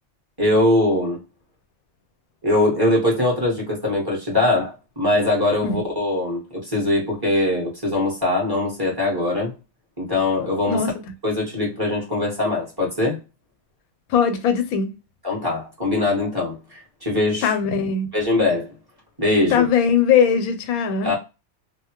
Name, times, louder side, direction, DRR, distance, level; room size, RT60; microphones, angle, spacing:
voice 1, 0.4-1.2 2.4-9.5 10.0-10.8 11.2-13.2 15.2-17.5 18.1-18.7 19.2-19.7 21.0-21.2, left 2 dB, 15° right, 1.2 m, -22 dB
voice 2, 14.1-14.9 17.4-18.1 19.5-21.1, left 7 dB, 90° left, 1.1 m, -20 dB
2.8 x 2.2 x 2.9 m
omnidirectional pair, 1.5 m